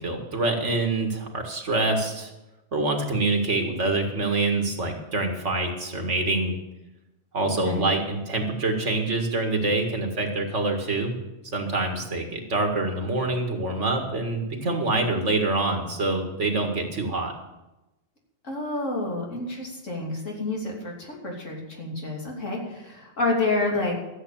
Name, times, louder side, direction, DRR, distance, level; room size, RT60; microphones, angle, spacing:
voice 1, 0.0-2.3 2.7-6.5 7.3-11.1 11.5-17.3, right 2 dB, 70° right, 3 dB, 2.2 m, -25 dB
voice 2, 18.4-23.9, left 2 dB, 85° left, -1 dB, 3.3 m, -29 dB
14.0 x 8.1 x 7.1 m, 0.98 s
omnidirectional pair, 1.3 m